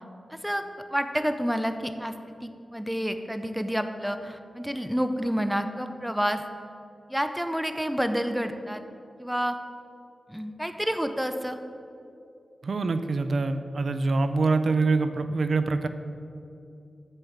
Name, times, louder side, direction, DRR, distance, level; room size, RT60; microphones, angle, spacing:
voice 1, 0.3-0.6 0.9-6.4 7.1-8.8 9.2-9.6 10.3-11.6, equal, 5° right, 8 dB, 0.5 m, -29 dB
voice 2, 12.6-15.9, right 3 dB, 60° right, 10 dB, 0.5 m, -25 dB
8.4 x 6.7 x 7.2 m, 2.7 s
wide cardioid pair, 120°, 0 cm